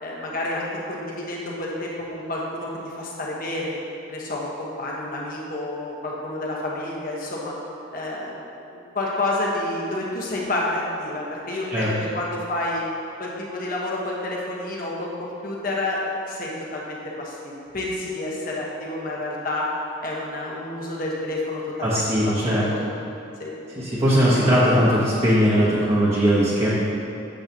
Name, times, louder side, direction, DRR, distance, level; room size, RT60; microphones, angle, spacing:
voice 1, 0.0-3.8 4.1-7.5 7.9-8.4 8.7-12.8 13.2-16.0 16.3-19.7 20.0-22.8 23.4-23.5, left 2 dB, 45° left, -4 dB, 1.3 m, -29 dB
voice 2, 21.8-22.7 23.7-26.7, equal, 30° right, -10 dB, 1.2 m, -19 dB
8.6 x 7.6 x 3.0 m, 2.8 s
head